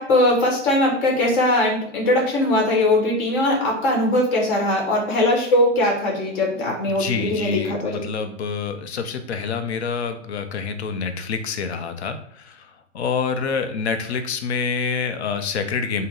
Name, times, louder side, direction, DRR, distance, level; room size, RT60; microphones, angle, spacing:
voice 1, 0.0-8.0, left 1 dB, 35° left, -1 dB, 1.2 m, -20 dB
voice 2, 6.7-16.1, left 5 dB, 55° left, 7 dB, 0.6 m, -27 dB
3.6 x 2.1 x 3.7 m, 0.66 s
figure-of-eight pair, 120°, 38 cm